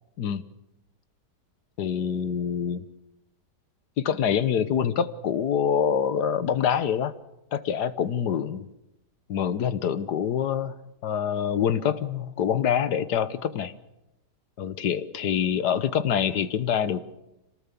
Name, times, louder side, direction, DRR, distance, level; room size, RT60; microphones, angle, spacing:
voice 1, 1.8-2.9 4.0-7.1 7.5-8.7 9.3-10.8 11.0-13.7 14.6-17.0, left 8 dB, 70° left, 13 dB, 1.6 m, -25 dB
27.0 x 19.0 x 6.9 m, 0.91 s
omnidirectional pair, 1.8 m